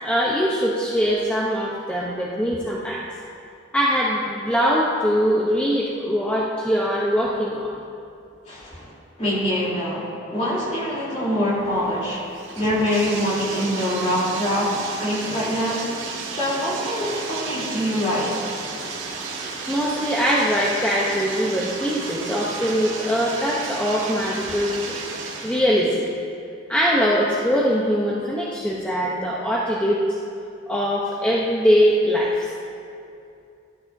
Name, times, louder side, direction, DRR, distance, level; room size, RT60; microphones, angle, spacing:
voice 1, 0.0-3.0 3.7-7.7 19.7-24.9 25.4-26.1 26.7-30.0 30.7-32.5, equal, 5° left, -6 dB, 0.8 m, -22 dB
voice 2, 8.5-8.9 9.2-12.3 12.5-15.9 16.3-18.4, equal, 35° left, -7 dB, 3.3 m, -24 dB
Bathtub (filling or washing), 11.6-25.6, right 4 dB, 70° right, 1.9 m, -33 dB
17.5 x 11.5 x 2.7 m, 2.6 s
head